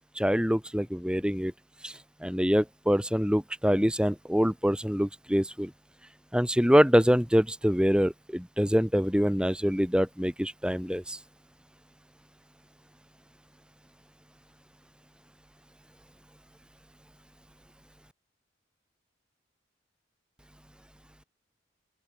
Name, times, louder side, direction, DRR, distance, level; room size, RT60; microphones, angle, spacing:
voice 1, 0.1-1.5 1.8-1.9 2.2-5.7 6.3-11.2, equal, 5° right, 3.3 m, -25 dB
open air
head